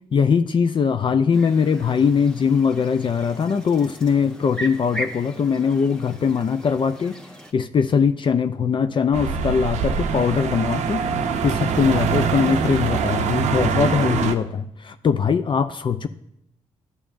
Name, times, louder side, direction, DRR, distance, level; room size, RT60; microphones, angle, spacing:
voice 1, 0.1-7.1 7.5-11.0 11.4-16.1, left 6 dB, 45° left, 9 dB, 0.4 m, -21 dB
sound 1, 1.3-7.5, right 1 dB, 5° left, 1.0 m, -38 dB
sound 2, 9.1-14.3, right 6 dB, 80° right, 0.6 m, -23 dB
11.0 x 7.0 x 2.5 m, 0.76 s
cardioid pair, 60°, 12 cm